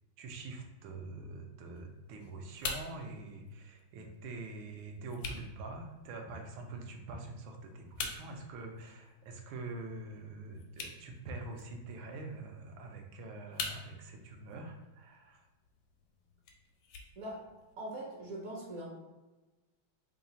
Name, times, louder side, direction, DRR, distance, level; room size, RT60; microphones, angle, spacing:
voice 1, 0.2-15.4, right 2 dB, 80° right, 3 dB, 1.4 m, -45 dB
sound 1, 1.7-17.8, left 4 dB, 90° left, 1.5 m, -47 dB
voice 2, 17.8-18.9, right 1 dB, 55° right, -4 dB, 0.8 m, -41 dB
3.7 x 2.4 x 3.9 m, 1.1 s
omnidirectional pair, 2.3 m